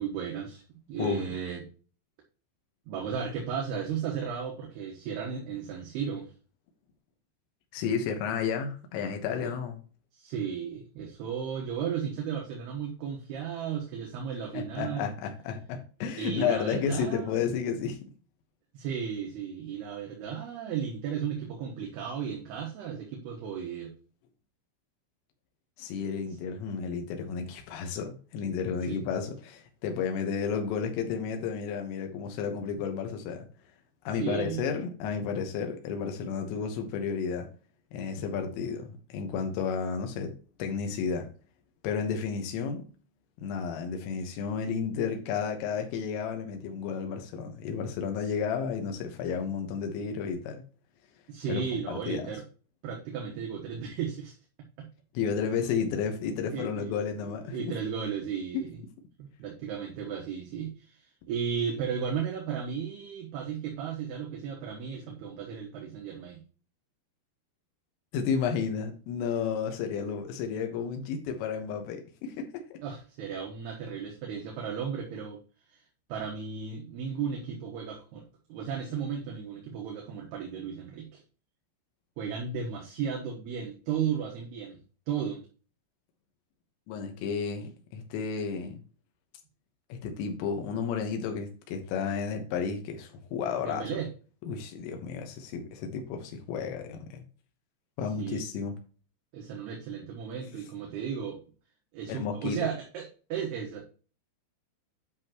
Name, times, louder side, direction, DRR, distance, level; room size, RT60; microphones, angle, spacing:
voice 1, 0.0-1.6 2.9-6.3 9.4-9.5 10.1-15.1 16.2-17.4 18.7-23.9 28.8-29.1 34.2-34.6 48.2-48.3 51.3-52.4 52.8-54.4 54.8-54.9 56.5-56.9 57.2-58.8 59.2-66.4 72.8-75.4 75.7-75.8 76.1-78.2 78.5-81.2 82.2-84.8 85.1-85.4 93.6-94.1 98.2-98.5 99.3-101.4 101.9-103.9, right 7 dB, 70° right, 0 dB, 2.8 m, -35 dB
voice 2, 1.0-1.3 7.7-9.8 14.5-18.0 25.8-33.5 34.1-37.5 37.9-40.3 40.6-41.3 41.8-42.8 43.4-50.6 51.5-51.6 51.9-52.3 55.2-57.8 68.1-72.8 86.9-88.8 89.9-93.8 94.5-97.2 98.0-98.8 102.1-102.7, left 6 dB, 90° left, 5 dB, 3.9 m, -32 dB
10.0 x 5.9 x 3.0 m, 0.38 s
omnidirectional pair, 5.6 m